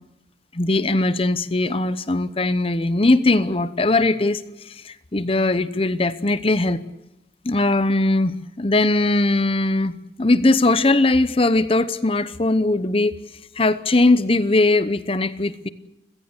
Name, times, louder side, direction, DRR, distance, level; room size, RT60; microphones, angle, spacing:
voice 1, 0.5-4.4 4.7-6.8 7.4-13.1 13.6-15.7, left 2 dB, 30° left, 14 dB, 0.9 m, -20 dB
29.5 x 16.5 x 8.1 m, 0.90 s
head